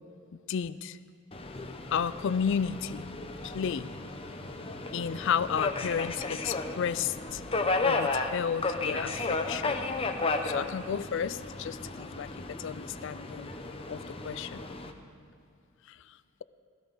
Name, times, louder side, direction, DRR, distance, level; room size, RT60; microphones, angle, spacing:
voice 1, 0.5-1.0 1.9-3.1 3.4-3.9 4.9-7.4 7.8-9.8 10.4-13.5 13.9-14.6 15.9-16.0, left 7 dB, 55° left, 16 dB, 0.3 m, -32 dB
Subway metro underground, 1.3-14.9, left 3 dB, 25° left, 0.7 m, -34 dB
16.5 x 14.0 x 4.0 m, 2.4 s
head